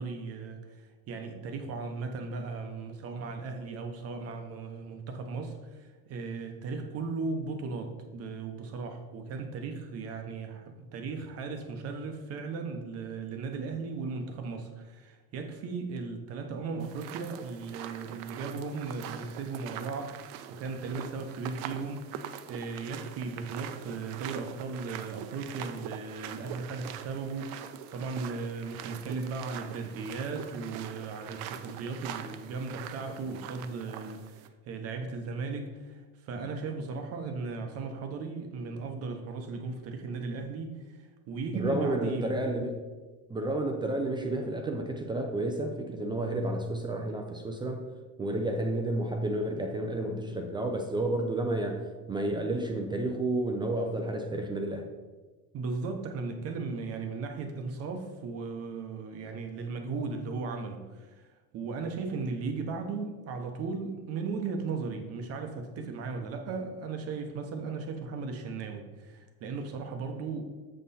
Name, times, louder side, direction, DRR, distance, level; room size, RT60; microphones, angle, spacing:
voice 1, 0.0-42.3 55.5-61.3 61.5-70.4, right 4 dB, 40° right, 0.8 m, -37 dB
sound 1, 16.8-34.5, right 9 dB, 80° right, 0.7 m, -43 dB
voice 2, 41.5-42.8 43.3-47.8 48.2-54.9, right 1 dB, 15° right, 0.3 m, -31 dB
7.5 x 5.6 x 4.1 m
cardioid pair, 165°, 36 cm